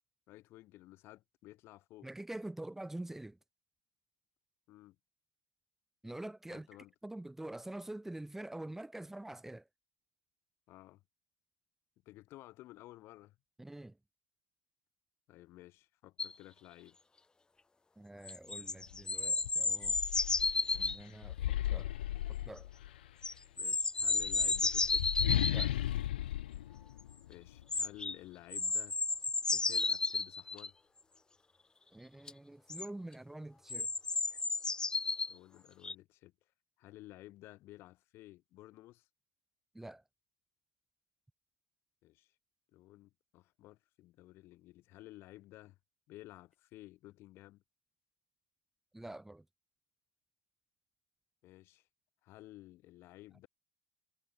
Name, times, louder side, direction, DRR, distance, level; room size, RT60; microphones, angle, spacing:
voice 1, 0.3-2.1 4.7-5.0 6.5-6.9 10.7-11.0 12.1-13.4 15.3-17.0 23.6-25.2 27.3-29.0 29.5-30.7 35.3-36.3 36.8-39.1 42.0-42.3 42.7-45.8 46.1-47.6 51.4-51.8 52.2-53.5, left 17 dB, 45° left, 3.9 m, -54 dB
voice 2, 2.0-3.4 6.0-6.7 7.0-9.7 13.6-14.0 18.0-20.0 20.7-21.4 21.7-21.9 22.4-22.7 25.5-25.8 31.9-33.9 39.7-40.0 48.9-49.4, right 1 dB, 5° right, 1.6 m, -45 dB
sound 1, 16.2-16.3 18.3-21.0 23.2-25.7 27.7-28.1 28.5-30.7 32.3-32.4 32.7-32.8 33.7-35.3 35.8-35.9, left 3 dB, 15° left, 1.1 m, -33 dB
sound 2, 18.9-19.0 19.4-23.1 24.0-27.6, left 13 dB, 70° left, 0.8 m, -36 dB
figure-of-eight pair, 70°, 6 cm